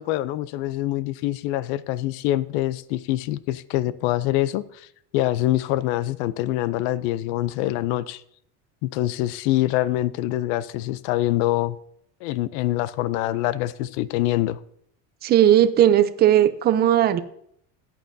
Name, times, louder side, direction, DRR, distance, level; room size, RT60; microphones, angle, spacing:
voice 1, 0.0-4.9 5.1-8.2 8.8-11.8 12.2-14.6, left 15 dB, 75° left, 17 dB, 0.6 m, -25 dB
voice 2, 15.2-17.2, right 11 dB, 30° right, 12 dB, 0.5 m, -17 dB
14.5 x 9.2 x 2.7 m, 0.69 s
cardioid pair, 145°, 35 cm